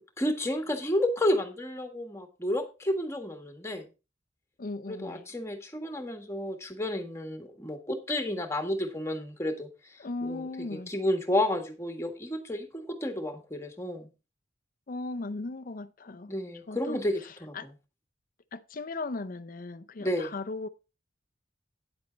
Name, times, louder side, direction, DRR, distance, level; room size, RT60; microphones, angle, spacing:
voice 1, 0.0-3.9 4.9-14.1 16.3-17.7 20.0-20.3, left 1 dB, 15° left, 1.6 m, -31 dB
voice 2, 4.6-5.2 10.0-10.9 14.9-16.3 16.7-17.0 17.5-17.7 18.5-20.7, left 3 dB, 45° left, 0.6 m, -37 dB
9.9 x 7.6 x 4.0 m
head